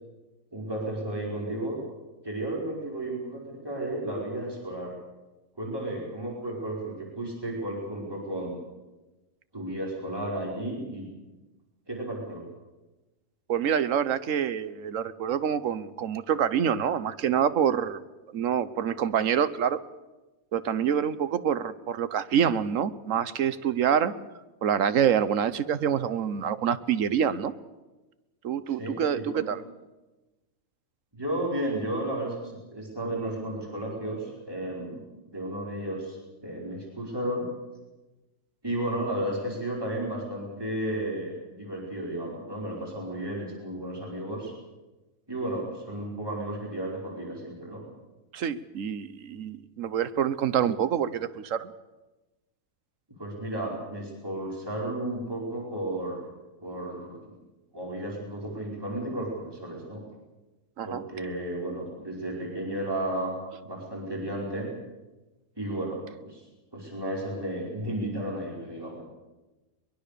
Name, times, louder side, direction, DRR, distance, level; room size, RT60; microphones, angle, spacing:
voice 1, 0.5-1.8 2.2-4.9 5.6-8.5 9.5-11.1 11.9-12.4 28.7-29.4 31.1-37.5 38.6-44.5 45.3-47.8 53.2-56.2 56.6-57.3 57.7-60.0 60.8-63.3 63.6-64.7 65.6-66.4 66.7-69.0, right 1 dB, 15° right, -2 dB, 5.0 m, -33 dB
voice 2, 13.5-18.0 18.3-19.8 20.5-24.2 24.6-27.5 28.4-29.6 48.3-51.7 60.8-61.0, right 8 dB, 65° right, 14 dB, 1.3 m, -26 dB
23.0 x 21.5 x 6.8 m, 1.1 s
omnidirectional pair, 1.5 m